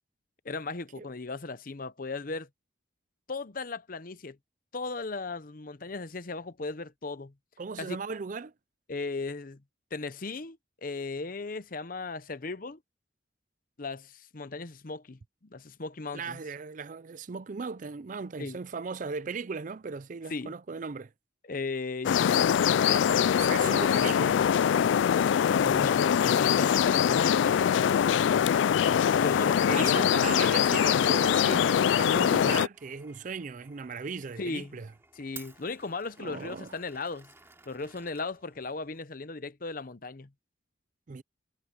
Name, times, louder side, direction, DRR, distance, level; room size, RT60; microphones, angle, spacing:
voice 1, 0.4-2.5 3.3-4.4 4.7-7.3 7.8-8.0 8.9-9.6 9.9-12.8 13.8-16.4 18.4-18.6 20.3-20.5 21.4-23.4 25.4-28.6 29.2-30.1 34.4-34.7 35.2-37.3 37.7-40.3, left 3 dB, 45° left, 0.8 m, -37 dB
voice 2, 7.6-8.5 16.1-21.1 22.9-24.4 29.7-34.9 36.2-36.8 41.1-41.2, right 5 dB, 40° right, 0.4 m, -37 dB
sound 1, 22.0-32.7, left 8 dB, 75° left, 0.3 m, -23 dB
Glass, 32.7-39.0, right 4 dB, 15° right, 2.7 m, -54 dB
head